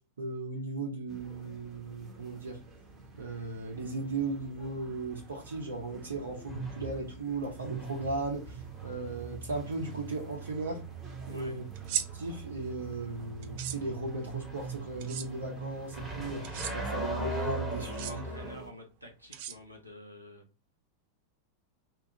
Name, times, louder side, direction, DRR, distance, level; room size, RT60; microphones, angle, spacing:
voice 1, 0.2-2.6 3.2-10.8 11.3-11.6 12.1-18.2, right 3 dB, 70° right, 0 dB, 0.8 m, -37 dB
sound 1, 1.1-18.7, right 2 dB, 25° right, 1.0 m, -52 dB
sound 2, 3.7-18.6, right 3 dB, 5° right, 1.1 m, -40 dB
voice 2, 11.2-11.6 17.8-20.4, equal, 90° left, 1 dB, 0.7 m, -49 dB
sound 3, 11.7-12.1 13.4-13.8 15.0-15.3 16.4-16.7 17.8-18.1 19.3-19.9, right 10 dB, 50° right, 0.3 m, -35 dB
2.9 x 2.4 x 2.8 m, 0.32 s
figure-of-eight pair, 90°, 0 cm